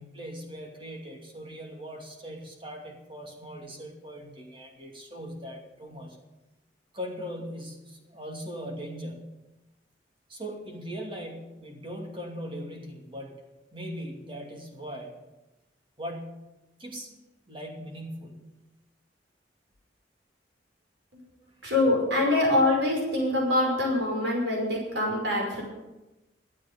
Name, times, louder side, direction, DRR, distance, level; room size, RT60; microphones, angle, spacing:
voice 1, 0.0-6.2 6.9-9.2 10.3-13.3 13.7-15.2 16.0-16.5 16.8-17.1 17.5-18.4 21.4-21.5, equal, 30° right, 1 dB, 2.6 m, -39 dB
voice 2, 21.6-25.6, left 2 dB, 75° right, -1 dB, 5.4 m, -24 dB
13.0 x 8.5 x 8.7 m, 1.0 s
head